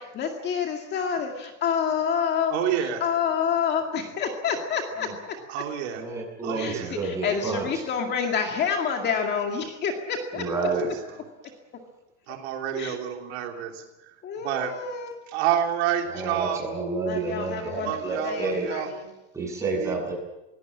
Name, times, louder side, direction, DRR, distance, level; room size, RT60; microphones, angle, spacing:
voice 1, 0.0-2.5 3.0-5.1 6.6-6.7 7.2-10.4 12.8-12.9 14.2-15.1 17.1-18.0 18.2-18.8, left 7 dB, 25° left, 3 dB, 2.2 m, -27 dB
voice 2, 2.5-3.0 5.5-6.0 6.4-6.9 10.4-10.9 12.3-14.2 14.4-14.7 15.3-16.6 17.8-18.9 19.8-20.1, right 10 dB, 55° right, 2 dB, 3.2 m, -29 dB
voice 3, 5.9-7.9 10.3-11.1 16.1-18.7 19.3-20.1, right 3 dB, 10° right, -3 dB, 7.8 m, -30 dB
23.0 x 17.0 x 8.7 m, 1.0 s
supercardioid pair, 155°, 37 cm